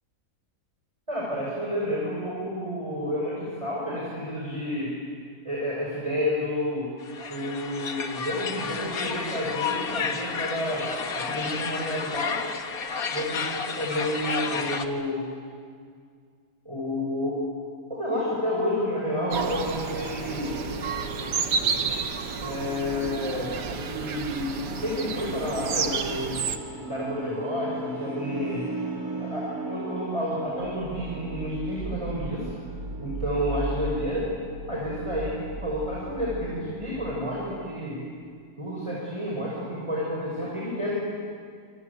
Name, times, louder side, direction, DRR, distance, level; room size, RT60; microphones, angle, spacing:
voice 1, 1.1-4.9 5.4-6.9 7.3-10.9 11.1-12.4 13.1-15.2 16.7-17.4 17.9-20.5 22.4-26.3 26.9-28.6 29.2-32.5 33.0-34.3 34.7-38.0 38.6-41.1, left 1 dB, 15° right, -5 dB, 5.6 m, -30 dB
sound 1, 7.0-14.9, left 5 dB, 60° left, 1.8 m, -31 dB
sound 2, 19.3-26.6, right 5 dB, 80° right, 2.0 m, -31 dB
sound 3, 20.2-36.8, right 2 dB, 60° right, 4.0 m, -37 dB
27.0 x 26.0 x 8.4 m, 2.1 s
omnidirectional pair, 1.8 m